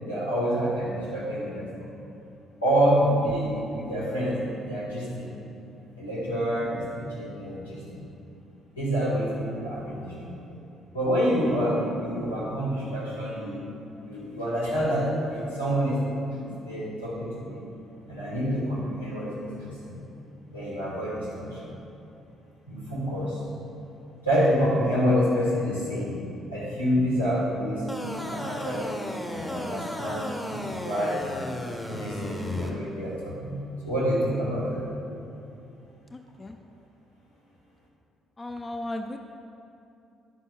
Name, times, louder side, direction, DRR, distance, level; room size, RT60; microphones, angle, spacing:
voice 1, 0.0-1.9 2.6-5.3 6.0-8.1 8.7-10.5 10.9-13.6 14.0-16.0 16.4-17.6 18.1-20.0 20.5-21.7 22.7-23.4 24.2-29.0 29.3-31.5 31.9-34.9, equal, 90° left, -8 dB, 1.6 m, -28 dB
sound 1, 27.9-32.7, left 1 dB, 15° left, 1.0 m, -35 dB
voice 2, 36.1-36.6 38.4-39.2, left 1 dB, 30° left, 5 dB, 0.5 m, -36 dB
10.0 x 9.8 x 2.3 m, 2.7 s
figure-of-eight pair, 45°, 0 cm